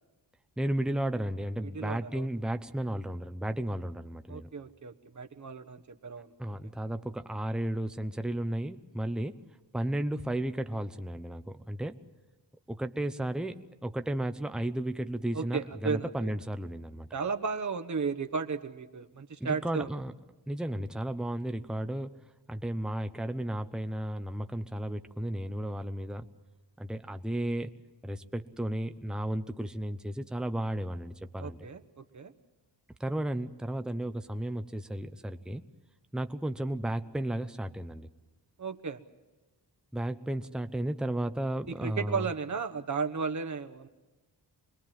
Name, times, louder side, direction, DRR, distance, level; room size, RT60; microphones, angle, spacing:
voice 1, 0.6-4.5 6.4-9.4 9.7-12.0 12.7-17.1 19.4-20.1 20.5-22.2 22.5-26.3 26.8-27.7 28.0-31.6 33.0-35.6 36.1-38.1 39.9-42.3, right 1 dB, ahead, 8 dB, 0.8 m, -33 dB
voice 2, 1.7-2.3 4.3-6.3 15.3-16.3 17.1-19.9 31.4-32.3 38.6-39.0 41.7-43.9, right 5 dB, 45° right, 7 dB, 1.3 m, -34 dB
25.5 x 21.0 x 7.6 m, 1.1 s
wide cardioid pair, 110°, 42 cm